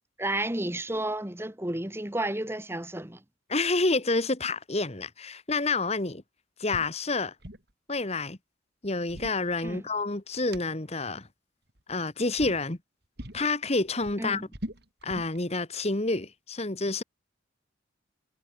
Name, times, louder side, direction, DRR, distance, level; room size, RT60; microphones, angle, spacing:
voice 1, 0.2-3.2 9.6-9.8 14.2-14.4, right 1 dB, 10° right, 1.4 m, -32 dB
voice 2, 3.5-6.2 6.6-7.3 7.9-8.4 8.8-11.3 11.9-12.8 13.3-14.4 15.0-17.0, left 3 dB, 30° left, 1.4 m, -28 dB
sound 1, 6.7-6.9 7.2-7.7 8.8-10.1 10.5-10.6 11.7-12.0 12.4-12.6 13.2-13.5 13.8-15.4, equal, 55° right, 5.2 m, -41 dB
head